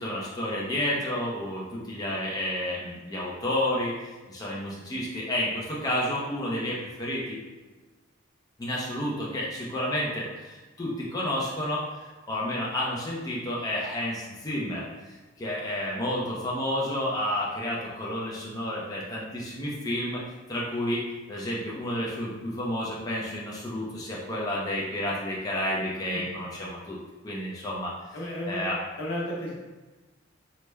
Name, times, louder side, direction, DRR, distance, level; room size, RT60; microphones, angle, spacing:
voice 1, 0.0-7.4 8.6-11.8 12.3-20.2 20.5-21.0 21.3-27.0 27.2-27.9 28.5-28.8, left 1 dB, 20° left, -5 dB, 0.4 m, -30 dB
voice 2, 28.1-28.7 29.0-29.5, left 1 dB, 80° left, -4 dB, 0.9 m, -33 dB
3.3 x 2.0 x 3.2 m, 1.2 s
head